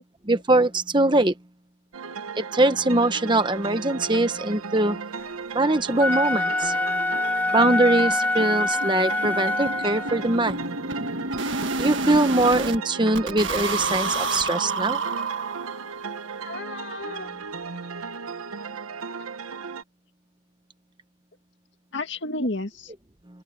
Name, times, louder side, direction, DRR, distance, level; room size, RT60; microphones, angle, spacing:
voice 1, 0.3-1.3 2.4-5.0 5.5-6.7 7.5-10.7 11.8-15.0, right 2 dB, 20° right, 1.1 m, -22 dB
sound 1, 1.9-19.8, right 5 dB, 85° right, 1.0 m, -36 dB
Wind instrument woodwind instrument, 5.9-10.3, left 2 dB, 10° left, 0.3 m, -25 dB
sound 2, 5.9-6.0 6.3-6.4 6.7-6.8 7.1-7.3 7.6-12.8 13.1-15.9, right 3 dB, 60° right, 1.7 m, -30 dB
voice 2, 16.1-17.3 21.9-22.9, left 2 dB, 55° left, 2.1 m, -32 dB
head